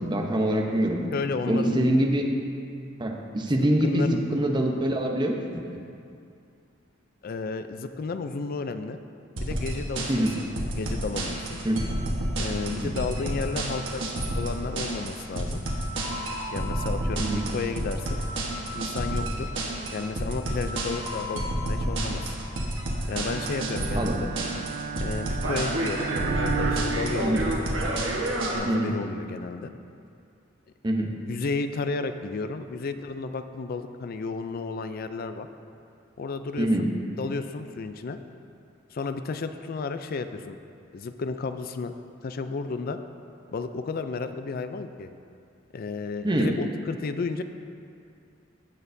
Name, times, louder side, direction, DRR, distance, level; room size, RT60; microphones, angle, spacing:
voice 1, 0.0-1.0 1.5-2.2 3.0-5.4 5.7-5.8 10.1-10.4 11.6-11.9 12.7-12.9 17.2-17.5 23.9-24.2 27.2-27.4 28.6-29.0 30.8-31.1 36.6-36.9 46.2-46.5, right 1 dB, 25° right, 1 dB, 0.8 m, -24 dB
voice 2, 1.1-1.8 3.6-4.2 7.2-9.0 9.4-10.2 10.8-11.6 12.4-14.0 14.3-15.6 16.5-18.2 18.7-19.5 19.9-22.3 23.1-24.3 25.0-27.4 28.5-29.7 31.3-35.5 36.2-36.9 37.2-38.2 38.9-40.6 40.9-41.9 42.2-43.0 43.5-45.1 45.7-47.4, left 4 dB, 50° left, 9 dB, 0.4 m, -32 dB
sound 1, 9.4-28.6, right 1 dB, 70° right, 1.3 m, -30 dB
Bowed string instrument, 23.1-28.0, right 6 dB, 55° right, 0.4 m, -34 dB
16.0 x 6.4 x 2.7 m, 2.5 s
head